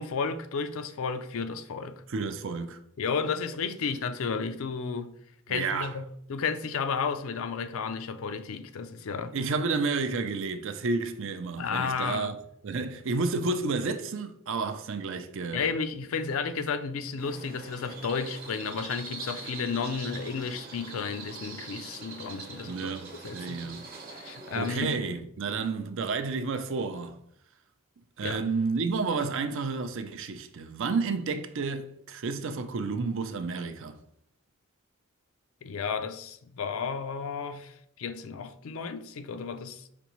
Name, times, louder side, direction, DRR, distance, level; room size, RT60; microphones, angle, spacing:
voice 1, 0.0-2.0 3.0-5.1 5.5-6.0 6.3-9.3 11.6-12.3 15.5-23.0 23.2-23.6 24.1-25.0 28.2-28.4 35.6-39.8, left 5 dB, 65° left, 0.4 m, -32 dB
voice 2, 2.1-2.8 5.5-5.9 9.3-12.4 12.6-15.7 22.6-23.9 24.5-27.2 28.2-34.0, right 4 dB, 60° right, 0.5 m, -31 dB
sound 1, 17.2-24.9, right 4 dB, 45° right, 0.9 m, -43 dB
5.1 x 3.4 x 3.0 m
head